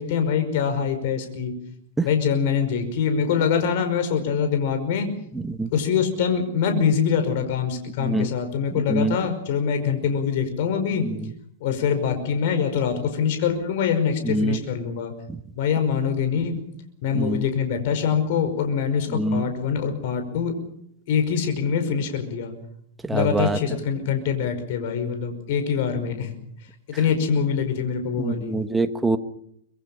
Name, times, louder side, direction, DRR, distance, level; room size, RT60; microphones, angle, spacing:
voice 1, 0.0-1.5 2.0-5.1 5.7-11.1 11.6-15.1 15.6-16.6 17.0-20.5 21.1-22.5 23.1-26.3 26.9-28.6, left 7 dB, 55° left, 7 dB, 5.3 m, -24 dB
voice 2, 8.0-8.3 8.9-9.2 11.0-11.3 14.2-14.6 17.1-17.4 19.1-19.4 23.0-23.6 28.2-29.2, right 2 dB, 5° right, 8 dB, 1.2 m, -24 dB
25.0 x 22.5 x 5.6 m, 0.71 s
supercardioid pair, 155°, 0 cm